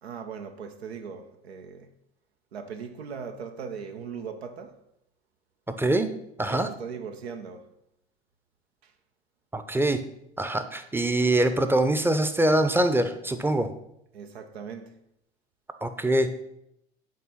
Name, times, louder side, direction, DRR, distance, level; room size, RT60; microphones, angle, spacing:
voice 1, 0.0-1.9 2.5-4.8 6.5-7.7 14.1-15.0, right 6 dB, 80° right, 0.6 m, -39 dB
voice 2, 5.8-6.1 6.4-6.7 9.5-10.0 10.4-13.7 15.8-16.4, right 1 dB, 5° right, 0.6 m, -24 dB
8.6 x 3.6 x 5.6 m
figure-of-eight pair, 70°, 32 cm